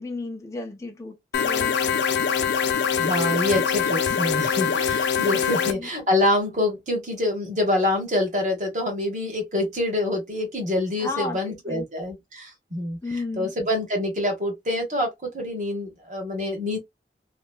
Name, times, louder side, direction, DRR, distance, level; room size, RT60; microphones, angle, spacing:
voice 1, 0.0-1.7 5.5-5.9 11.0-11.8 13.0-13.5, left 2 dB, 15° left, 0.4 m, -33 dB
sound 1, 1.3-5.7, left 7 dB, 80° left, 0.5 m, -23 dB
voice 2, 3.0-13.0 13.4-16.8, left 1 dB, 40° right, 1.3 m, -26 dB
3.1 x 2.3 x 2.3 m
head